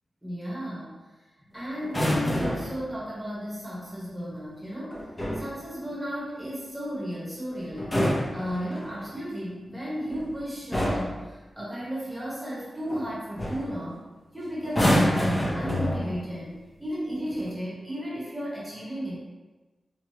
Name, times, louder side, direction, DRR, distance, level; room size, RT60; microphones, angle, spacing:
voice 1, 0.2-0.9 1.4-5.1 5.3-14.0 14.3-19.2, equal, 5° right, -7 dB, 1.1 m, -34 dB
sound 1, 1.8-2.8 4.9-5.5 7.7-9.1 10.1-10.3 10.7-11.2 12.9-13.1 13.4-13.7 14.6-16.3 17.2-17.5, equal, 20° left, 0.7 m, -27 dB
4.6 x 2.3 x 2.8 m, 1.2 s
wide cardioid pair, 120°, 0 cm